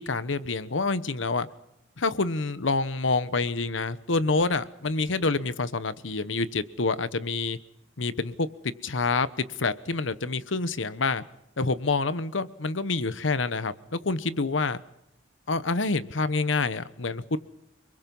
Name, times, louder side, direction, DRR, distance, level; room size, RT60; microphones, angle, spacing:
voice 1, 0.0-1.5 2.0-7.6 8.0-11.2 11.6-14.8 15.5-17.4, left 3 dB, 85° left, 14 dB, 1.1 m, -27 dB
30.0 x 21.5 x 5.5 m, 0.82 s
head